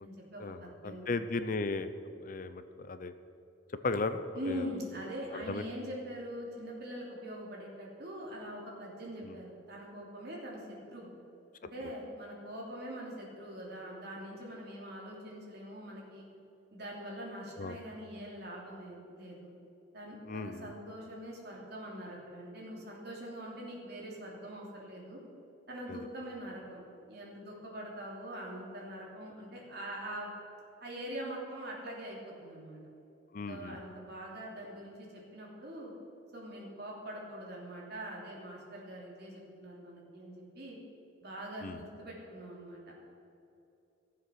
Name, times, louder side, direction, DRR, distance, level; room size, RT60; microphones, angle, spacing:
voice 1, 0.0-1.2 4.3-11.1 11.7-16.2 16.7-19.5 19.9-25.2 25.7-26.8 27.1-30.3 30.8-32.8 33.5-35.9 36.3-40.8 41.2-43.1, equal, 50° right, -3 dB, 3.0 m, -43 dB
voice 2, 0.8-1.9 2.2-3.1 3.8-4.7 5.5-5.6 9.2-9.3 17.6-17.8 20.3-20.7 25.9-26.0 33.3-33.8 41.6-41.8, left 3 dB, 40° left, 11 dB, 0.5 m, -35 dB
15.0 x 7.5 x 6.3 m, 2.8 s
head